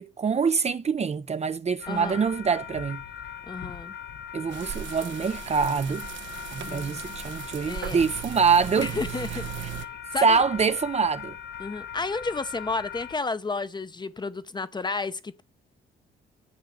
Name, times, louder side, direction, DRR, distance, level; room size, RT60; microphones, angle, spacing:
voice 1, 0.0-3.0 4.3-6.1 6.5-8.9 9.6-9.7 10.2-11.4, right 5 dB, 35° right, 0.6 m, -25 dB
sound 1, 1.8-13.2, left 8 dB, 60° left, 0.9 m, -40 dB
voice 2, 1.9-2.2 3.5-4.0 6.6-7.0 7.7-8.0 8.8-9.4 9.7-10.4 11.6-15.4, left 3 dB, 20° left, 0.8 m, -32 dB
sound 2, 4.5-9.9, right 9 dB, 70° right, 0.9 m, -38 dB
7.9 x 6.4 x 6.4 m
cardioid pair, 90°, 20 cm